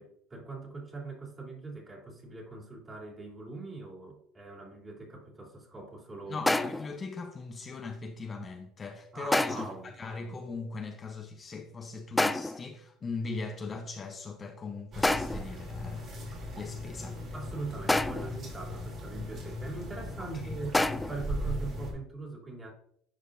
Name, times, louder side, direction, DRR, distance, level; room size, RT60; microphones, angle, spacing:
voice 1, 0.0-6.4 9.1-9.9 17.3-22.7, right 3 dB, 25° right, 2.9 m, -42 dB
voice 2, 6.3-16.2 16.6-17.2 20.2-20.6, left 4 dB, 30° left, 0.8 m, -40 dB
sound 1, 6.5-7.0 9.3-9.8 12.2-12.7 15.0-15.5 17.9-18.4 20.7-21.3, left 2 dB, 10° left, 0.3 m, -28 dB
sound 2, 14.9-21.9, equal, 50° right, 2.9 m, -38 dB
10.0 x 5.1 x 2.5 m
supercardioid pair, 85°, 0 cm